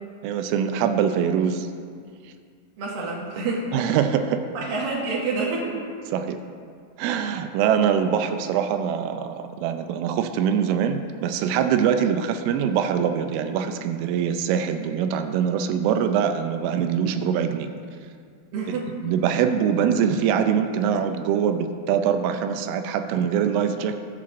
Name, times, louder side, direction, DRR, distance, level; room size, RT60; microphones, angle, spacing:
voice 1, 0.2-1.7 3.4-3.5 3.7-4.4 6.1-6.4 7.0-17.7 19.0-23.9, right 8 dB, 85° right, 7 dB, 3.0 m, -23 dB
voice 2, 2.8-3.7 4.5-5.7 18.5-18.9, right 3 dB, 60° right, -4 dB, 2.6 m, -27 dB
19.5 x 7.4 x 2.5 m, 2.2 s
omnidirectional pair, 5.8 m